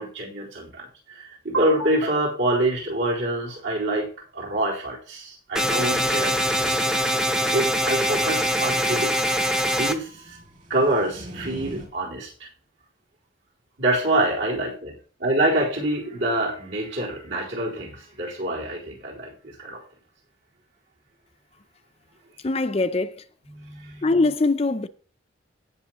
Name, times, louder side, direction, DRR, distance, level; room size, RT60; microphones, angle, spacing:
voice 1, 0.0-7.2 7.5-10.4 10.7-12.5 13.8-14.9 15.2-19.8 23.4-24.1, right 1 dB, 70° right, 4.2 m, -26 dB
sound 1, 5.6-10.0, equal, 5° right, 0.8 m, -23 dB
sound 2, 7.7-11.9, equal, 40° right, 2.7 m, -43 dB
voice 2, 22.4-23.2 24.0-24.9, left 3 dB, 30° left, 0.5 m, -22 dB
17.0 x 6.4 x 3.0 m
head